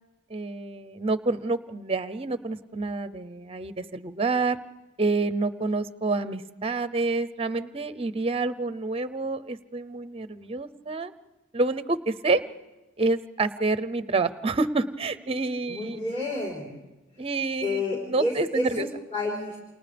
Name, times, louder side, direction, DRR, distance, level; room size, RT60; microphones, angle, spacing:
voice 1, 0.3-4.6 5.0-11.1 11.5-12.4 13.0-16.0 17.2-18.9, right 3 dB, 30° right, 12 dB, 0.6 m, -28 dB
voice 2, 15.7-16.7 17.2-17.3 17.6-19.6, left 2 dB, 30° left, -7 dB, 4.0 m, -30 dB
29.5 x 28.5 x 3.4 m, 1.1 s
head